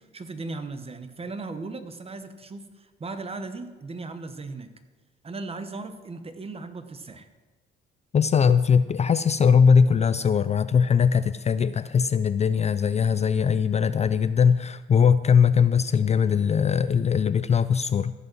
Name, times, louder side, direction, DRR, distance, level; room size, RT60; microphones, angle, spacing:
voice 1, 0.0-4.7 5.2-7.3, right 3 dB, 30° right, 9 dB, 1.1 m, -37 dB
voice 2, 8.1-18.1, left 6 dB, 35° left, 13 dB, 0.4 m, -20 dB
14.5 x 5.4 x 6.2 m, 1.3 s
cardioid pair, 90°, 20 cm